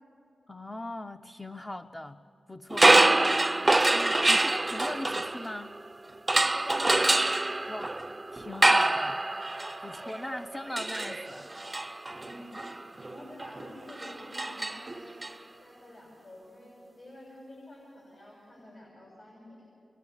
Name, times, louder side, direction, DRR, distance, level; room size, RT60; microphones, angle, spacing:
voice 1, 0.5-2.2 2.5-3.3 3.9-5.7 7.7-8.0 8.3-9.3 9.8-11.5 11.8-11.9, left 1 dB, 20° left, 6 dB, 0.7 m, -40 dB
sound 1, 2.7-5.8 6.3-15.3, right 2 dB, 25° right, 0.5 m, -26 dB
voice 2, 6.5-7.7 12.2-12.5 13.1-15.2 15.6-19.7, left 1 dB, 60° left, -3 dB, 6.7 m, -48 dB
28.5 x 22.5 x 7.2 m, 2.9 s
cardioid pair, 55°, 0 cm